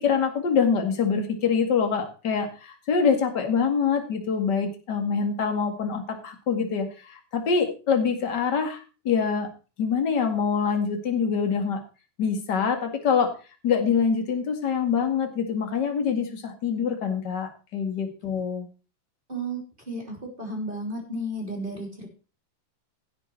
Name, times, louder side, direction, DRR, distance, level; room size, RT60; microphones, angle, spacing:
voice 1, 0.0-8.8 9.0-9.5 9.8-11.8 12.2-13.3 13.6-18.7, left 6 dB, 35° left, 5 dB, 2.2 m, -25 dB
voice 2, 19.3-19.6 19.9-22.1, right 1 dB, 15° right, 1 dB, 3.1 m, -33 dB
16.0 x 6.9 x 4.6 m, 0.33 s
omnidirectional pair, 3.9 m